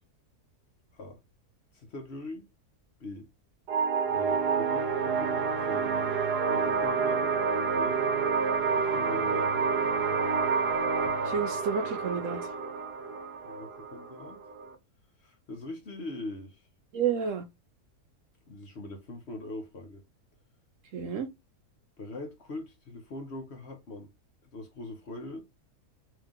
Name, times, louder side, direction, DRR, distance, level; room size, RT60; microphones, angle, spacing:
voice 1, 1.7-2.5 3.0-3.3 4.1-5.4 5.7-5.9 6.5-7.3 7.7-8.0 8.6-9.7 13.4-14.4 15.2-16.6 18.5-20.0 22.0-24.1 24.4-25.5, left 2 dB, 50° left, 1.0 m, -42 dB
sound 1, 3.7-14.7, right 5 dB, 90° right, 1.4 m, -28 dB
voice 2, 11.3-12.4 16.9-17.4 20.9-21.3, right 6 dB, 65° right, 0.9 m, -30 dB
3.2 x 2.9 x 3.6 m
omnidirectional pair, 1.7 m